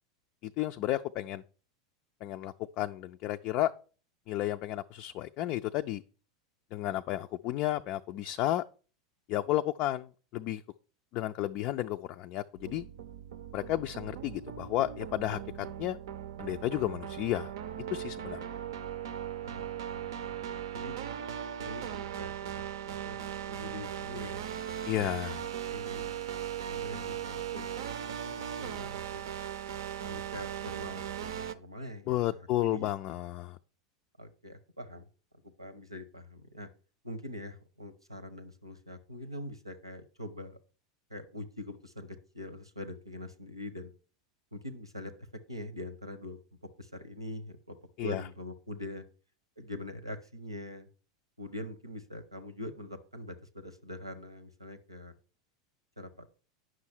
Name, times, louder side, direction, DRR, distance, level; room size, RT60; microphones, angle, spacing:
voice 1, 0.4-1.4 2.2-3.7 4.3-6.0 6.7-8.6 9.3-10.6 11.1-12.9 13.5-16.0 16.4-17.5 17.9-18.4 24.9-25.5 32.1-33.6 48.0-48.2, left 14 dB, 40° left, 0.4 m, -32 dB
sound 1, 12.6-31.5, right 9 dB, 60° right, 0.6 m, -38 dB
voice 2, 19.4-21.0 21.6-25.0 25.7-26.2 26.7-29.3 30.0-32.2 32.6-32.9 34.2-35.1 35.4-36.7 37.0-40.6 41.1-43.9 44.5-45.1 45.5-49.0 49.6-50.9 51.4-55.1 56.0-56.3, left 1 dB, 90° right, 1.0 m, -44 dB
9.5 x 6.2 x 4.3 m
figure-of-eight pair, 85°, 3 cm